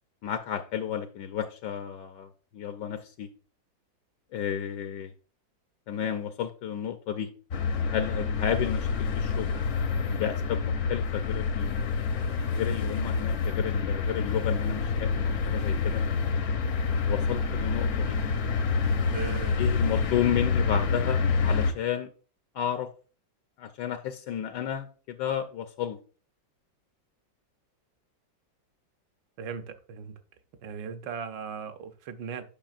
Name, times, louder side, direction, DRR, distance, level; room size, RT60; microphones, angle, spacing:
voice 1, 0.2-3.3 4.3-5.1 5.9-7.3 7.9-9.5 10.1-12.0 12.5-16.0 17.1-18.2 19.6-22.1 22.5-22.9 23.6-26.0, left 9 dB, 75° left, 7 dB, 1.2 m, -32 dB
sound 1, 7.5-21.7, left 5 dB, 60° left, 0.8 m, -27 dB
voice 2, 19.1-19.6 29.4-30.1 30.6-32.4, right 6 dB, 75° right, 9 dB, 1.3 m, -37 dB
8.7 x 5.7 x 2.4 m, 0.38 s
omnidirectional pair, 2.0 m